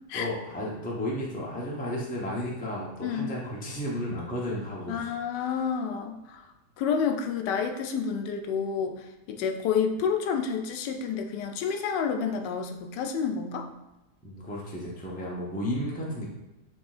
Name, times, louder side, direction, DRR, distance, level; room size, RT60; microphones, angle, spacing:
voice 1, 0.1-5.1 14.2-16.3, left 1 dB, 10° left, -4 dB, 0.5 m, -33 dB
voice 2, 4.9-6.5 6.8-13.7, left 6 dB, 85° left, 5 dB, 1.2 m, -29 dB
6.0 x 3.6 x 2.4 m, 1.0 s
omnidirectional pair, 1.8 m